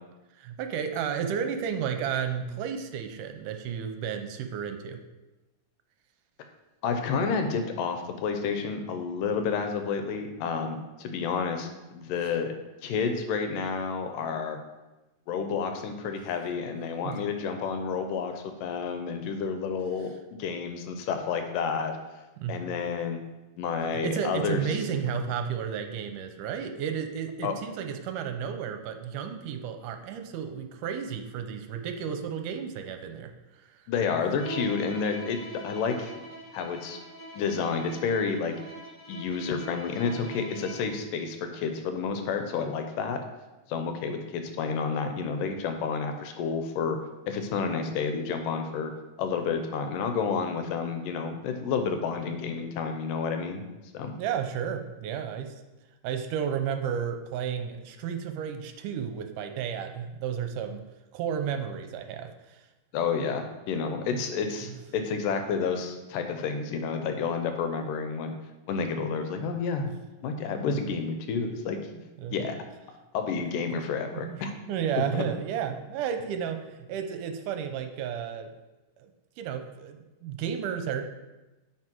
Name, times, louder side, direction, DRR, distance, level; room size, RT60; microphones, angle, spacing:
voice 1, 0.4-5.0 17.0-17.1 22.4-22.7 23.9-33.3 54.2-55.5 56.0-60.8 61.1-62.6 71.9-72.4 73.7-73.8 74.1-74.4 74.7-78.5 79.0-79.1 79.4-81.1, right 8 dB, 80° right, 6 dB, 2.2 m, -32 dB
voice 2, 6.8-12.5 12.8-14.6 15.3-22.0 22.5-23.2 23.6-24.8 27.4-27.5 33.9-36.1 36.5-37.0 37.3-38.5 39.1-43.2 43.7-47.0 47.3-48.9 49.2-53.6 53.9-54.1 62.9-68.4 68.7-69.9 70.2-71.8 72.3-72.6 73.1-74.5 75.1-75.2, left 5 dB, 80° left, 6 dB, 2.4 m, -30 dB
Bowed string instrument, 34.4-41.0, right 2 dB, 10° right, 0.8 m, -43 dB
9.7 x 5.1 x 4.5 m, 1.1 s
omnidirectional pair, 3.8 m